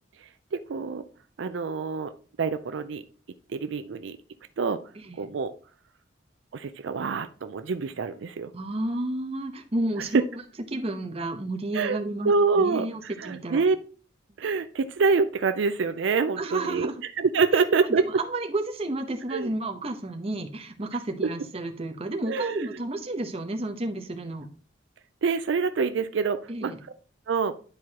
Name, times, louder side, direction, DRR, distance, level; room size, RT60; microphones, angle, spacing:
voice 1, 0.2-1.0 1.4-2.1 2.4-3.0 3.5-4.2 4.6-4.8 5.2-5.5 6.5-8.5 11.7-12.0 12.2-13.8 14.4-16.9 17.2-18.0 19.3-19.5 22.3-22.7 25.2-26.7 27.3-27.5, right 4 dB, 80° right, 10 dB, 0.4 m, -26 dB
voice 2, 5.0-5.3 8.5-10.2 10.7-13.6 16.4-17.0 17.5-24.5 26.5-26.8, right 2 dB, 35° right, 4 dB, 0.9 m, -31 dB
10.5 x 4.6 x 2.9 m, 0.41 s
head